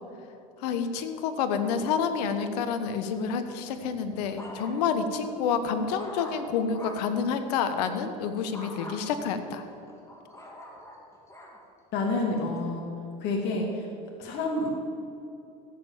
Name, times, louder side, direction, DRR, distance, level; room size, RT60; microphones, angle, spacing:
voice 1, 0.6-9.6, left 6 dB, 80° left, 8 dB, 1.2 m, -28 dB
sound 1, 3.7-5.0 5.5-7.2 8.5-9.0 9.6-11.6 12.2-12.6, left 1 dB, 15° left, 2.8 m, -44 dB
voice 2, 11.9-12.8 13.2-13.9 14.2-14.7, left 2 dB, 60° left, 0 dB, 2.3 m, -28 dB
15.5 x 7.7 x 7.2 m, 2.7 s
supercardioid pair, 100°, 20 cm